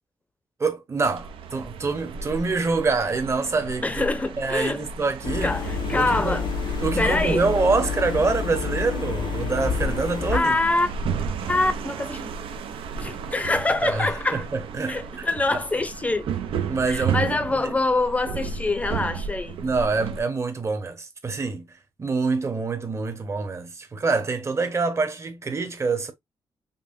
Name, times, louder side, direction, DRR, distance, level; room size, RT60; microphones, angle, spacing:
voice 1, 0.6-4.0 4.4-5.5 5.9-6.4 6.8-10.6 13.8-15.3 15.5-15.6 16.7-17.2 17.5-17.7 19.6-21.7 22.0-26.1, right 4 dB, 30° right, 0.9 m, -26 dB
sound 1, 1.0-20.2, right 6 dB, 85° right, 0.6 m, -33 dB
voice 2, 3.8-4.8 5.4-6.5 7.0-7.4 10.3-10.9 11.5-12.3 13.0-14.4 14.9-16.3 16.9-19.6, left 2 dB, 15° left, 0.6 m, -25 dB
sound 2, 5.2-10.4, left 6 dB, 65° left, 0.5 m, -29 dB
5.3 x 2.2 x 2.5 m
cardioid pair, 120°, 9 cm